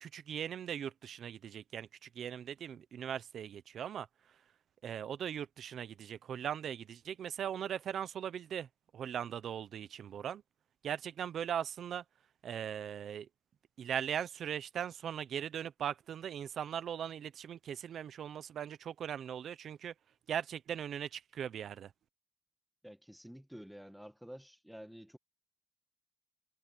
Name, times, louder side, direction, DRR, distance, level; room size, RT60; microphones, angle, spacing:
voice 1, 0.0-4.4 4.8-8.7 8.9-10.4 10.8-12.0 12.4-13.3 13.8-19.9 20.3-21.9, right 9 dB, 85° right, 0.7 m, -39 dB
voice 2, 22.8-25.2, equal, ahead, 1.6 m, -50 dB
cardioid pair, 70°, 0 cm